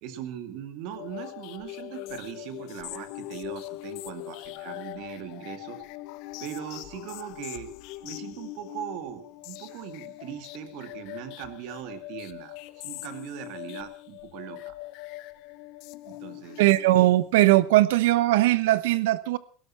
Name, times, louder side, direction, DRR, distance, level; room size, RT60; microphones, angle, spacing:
voice 1, 0.0-5.8 6.4-7.7 8.0-14.8 16.0-16.6, right 10 dB, 50° right, 2.1 m, -40 dB
sound 1, 0.9-17.4, left 17 dB, 50° left, 0.7 m, -41 dB
voice 2, 16.6-19.4, right 16 dB, 85° right, 1.1 m, -20 dB
17.5 x 12.5 x 5.7 m
cardioid pair, 175°, 0 cm